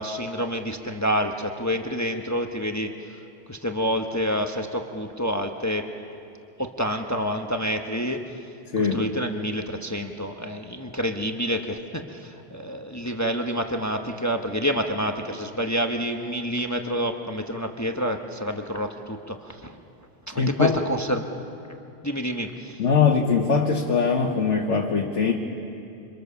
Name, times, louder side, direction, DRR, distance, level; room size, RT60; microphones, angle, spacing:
voice 1, 0.0-3.2 3.5-5.9 6.6-8.2 8.8-19.8 20.3-21.3 22.0-22.8, equal, 15° left, 4 dB, 1.1 m, -28 dB
voice 2, 8.7-9.0 20.4-20.8 22.8-25.3, left 5 dB, 80° left, 0 dB, 1.7 m, -21 dB
27.5 x 25.5 x 7.0 m, 2.7 s
omnidirectional pair, 1.2 m